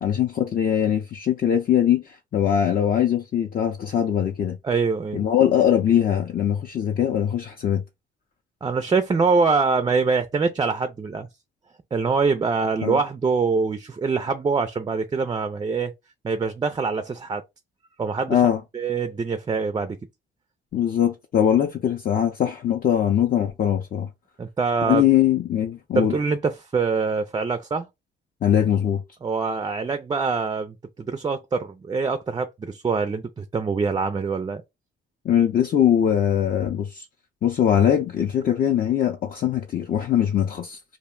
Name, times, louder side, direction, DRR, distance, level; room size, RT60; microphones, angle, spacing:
voice 1, 0.0-4.6 5.1-7.8 12.8-13.0 18.3-18.6 20.7-24.1 24.8-26.2 28.4-29.0 35.2-37.1 37.4-41.0, left 9 dB, 45° left, 0.5 m, -21 dB
voice 2, 4.6-5.2 8.6-11.3 11.9-15.9 16.2-17.4 18.0-18.4 18.7-20.0 24.4-25.0 25.9-27.9 29.2-34.6, right 4 dB, 20° right, 0.3 m, -24 dB
2.5 x 2.1 x 3.6 m
cardioid pair, 90°, 20 cm